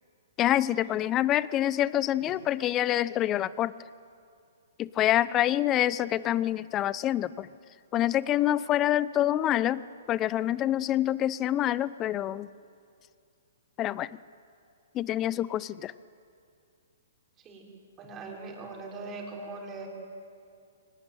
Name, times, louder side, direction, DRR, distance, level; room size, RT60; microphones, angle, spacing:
voice 1, 0.4-3.7 4.8-7.5 7.9-9.8 10.1-12.5 13.8-14.1 14.9-15.9, left 12 dB, 25° left, 19 dB, 0.6 m, -26 dB
voice 2, 18.0-19.9, right 3 dB, 20° right, -1 dB, 5.8 m, -41 dB
24.0 x 19.0 x 9.3 m, 2.4 s
hypercardioid pair, 140°, 0 cm